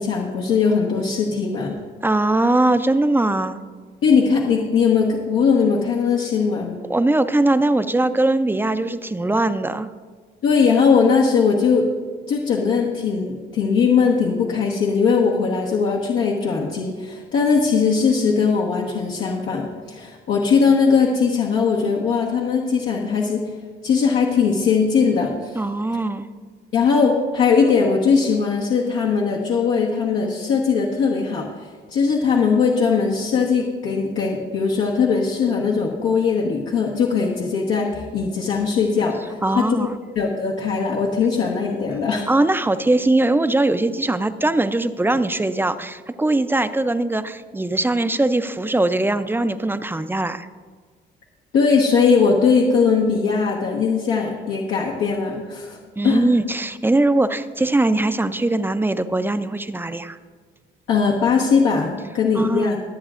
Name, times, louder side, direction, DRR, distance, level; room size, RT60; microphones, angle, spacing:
voice 1, 0.0-1.7 4.0-6.8 10.4-11.9 12.3-23.4 23.8-25.6 26.7-31.5 31.9-39.9 40.1-42.3 51.5-55.8 56.0-56.3 60.9-62.8, left 5 dB, 85° left, -4 dB, 1.3 m, -20 dB
voice 2, 2.0-3.6 6.9-9.9 25.5-26.3 39.4-40.0 42.3-50.5 56.0-60.2 62.3-62.7, right 2 dB, 10° right, 11 dB, 0.5 m, -21 dB
22.5 x 7.9 x 2.5 m, 1.5 s
cardioid pair, 90°, 20 cm